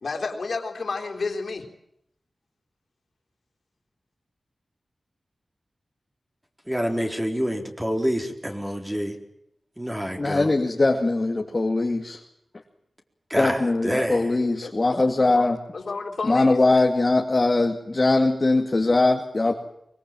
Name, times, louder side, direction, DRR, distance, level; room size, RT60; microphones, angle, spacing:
voice 1, 0.0-1.7 14.6-14.9 15.7-16.6, left 4 dB, 70° left, 2 dB, 3.8 m, -31 dB
voice 2, 6.7-9.2 9.8-10.5 13.3-14.4, equal, 10° right, 3 dB, 4.2 m, -27 dB
voice 3, 10.2-12.2 13.4-15.6 16.3-19.5, left 2 dB, 35° left, 2 dB, 2.1 m, -21 dB
24.0 x 23.0 x 7.7 m, 0.78 s
wide cardioid pair, 105°, 0 cm